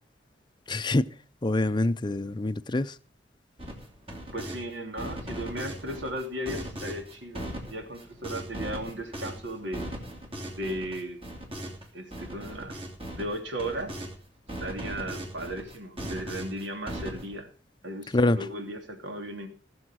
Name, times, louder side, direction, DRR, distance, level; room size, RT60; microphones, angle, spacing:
voice 1, 0.7-1.1 1.4-3.0 18.1-18.5, left 2 dB, 25° left, 0.5 m, -25 dB
sound 1, 3.6-4.6 5.0-14.1 14.5-17.4, right 1 dB, 30° right, 3.1 m, -38 dB
voice 2, 4.3-9.8 10.6-11.2 11.9-12.8 13.2-14.0 14.6-17.5 17.8-19.5, right 1 dB, 75° right, 3.0 m, -36 dB
17.5 x 7.1 x 6.3 m
head